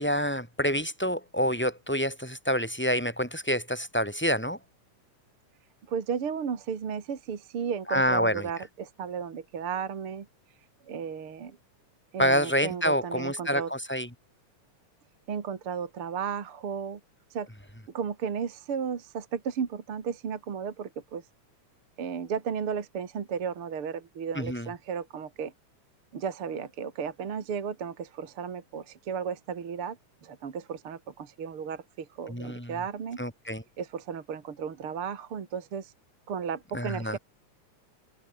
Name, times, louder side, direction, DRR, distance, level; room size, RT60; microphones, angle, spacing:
voice 1, 0.0-4.6 7.9-8.5 12.2-14.1 24.3-24.7 32.3-32.8 33.2-33.6 36.7-37.2, equal, 5° left, 6.2 m, -27 dB
voice 2, 5.9-10.3 10.9-11.6 12.1-13.7 15.3-17.0 17.3-17.5 17.9-21.2 22.0-25.5 26.1-30.0 30.2-33.2 33.8-35.9 36.3-37.2, right 7 dB, 45° right, 2.8 m, -34 dB
omnidirectional pair, 3.6 m